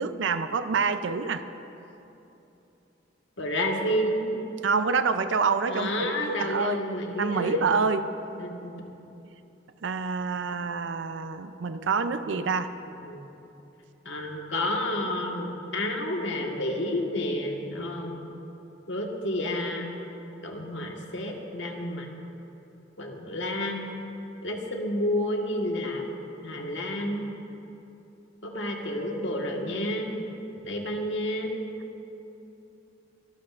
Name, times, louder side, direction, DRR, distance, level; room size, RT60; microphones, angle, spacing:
voice 1, 0.0-1.4 4.6-6.8 7.2-8.1 9.8-12.7, right 5 dB, 80° right, 10 dB, 0.5 m, -27 dB
voice 2, 3.4-4.2 5.7-7.7 8.3-8.7 11.8-11.9 12.3-12.4 13.0-13.2 14.0-18.2 18.9-19.9 20.4-22.1 23.0-23.9 24.4-26.0 26.4-27.2 28.4-30.1 30.6-31.5, left 1 dB, 80° left, 1 dB, 1.5 m, -30 dB
24.5 x 12.5 x 2.5 m, 2.9 s
head